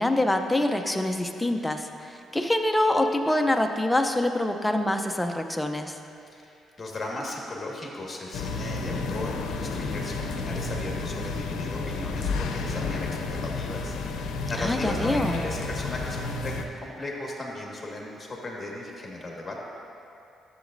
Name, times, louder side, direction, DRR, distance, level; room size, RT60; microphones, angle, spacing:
voice 1, 0.0-6.0 14.6-15.4, left 1 dB, 10° left, 5 dB, 0.6 m, -25 dB
voice 2, 6.3-16.5 16.8-19.6, left 2 dB, 25° left, -2 dB, 1.6 m, -36 dB
sound 1, 8.3-16.7, left 3 dB, 85° left, 0.6 m, -31 dB
12.0 x 7.2 x 2.6 m, 2.6 s
cardioid pair, 90°, 0 cm